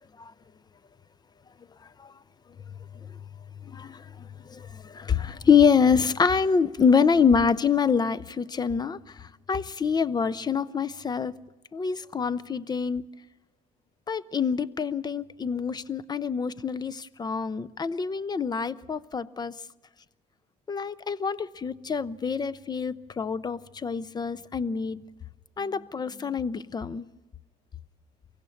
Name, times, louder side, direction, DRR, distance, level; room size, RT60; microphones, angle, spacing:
voice 1, 3.6-11.3 11.7-13.1 14.1-19.5 20.7-25.0 25.6-27.1, left 6 dB, 25° left, 0.5 m, -26 dB
23.5 x 15.5 x 7.1 m
cardioid pair, 110°, 17 cm